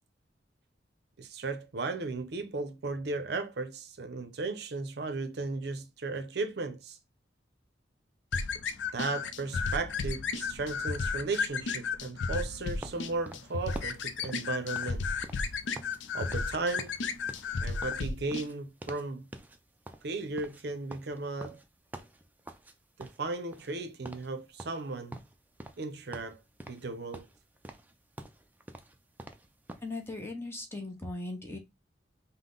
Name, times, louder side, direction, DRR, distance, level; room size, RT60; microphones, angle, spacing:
voice 1, 1.2-7.0 8.9-15.1 16.1-16.9 17.6-19.3 20.0-21.6 23.0-25.2 25.8-26.4 26.7-27.3, right 3 dB, 60° right, 0.6 m, -35 dB
sound 1, 8.3-18.5, left 5 dB, 75° left, 0.4 m, -33 dB
sound 2, 12.8-16.0 16.3-16.5 16.8-19.1 19.3-19.6 19.9-22.7 23.0-23.8 24.0-24.3 24.6-25.9 26.1-26.9 27.1-29.9, right 1 dB, 10° right, 0.4 m, -46 dB
voice 2, 29.8-31.6, left 2 dB, 15° left, 0.8 m, -38 dB
5.5 x 2.1 x 3.8 m
head